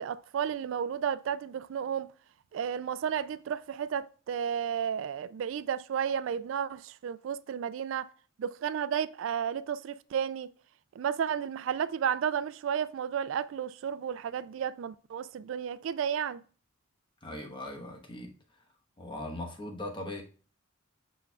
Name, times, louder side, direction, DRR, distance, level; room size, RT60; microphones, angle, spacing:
voice 1, 0.0-2.1 2.5-8.1 8.4-10.5 11.0-16.4, right 8 dB, 70° right, 0.3 m, -32 dB
voice 2, 17.2-18.3 19.0-20.2, left 1 dB, 25° left, 1.1 m, -39 dB
6.7 x 6.2 x 2.3 m
head